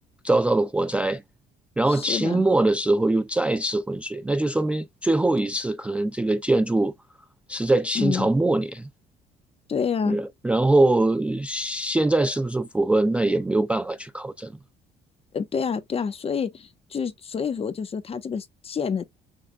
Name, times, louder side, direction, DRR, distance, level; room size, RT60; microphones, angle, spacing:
voice 1, 0.2-1.2 1.8-6.9 7.5-8.9 10.1-14.5, right 2 dB, 5° right, 0.3 m, -23 dB
voice 2, 1.9-2.5 7.9-8.3 9.7-10.2 15.3-19.0, left 6 dB, 35° left, 1.1 m, -28 dB
6.1 x 3.4 x 2.3 m
cardioid pair, 110°, 17 cm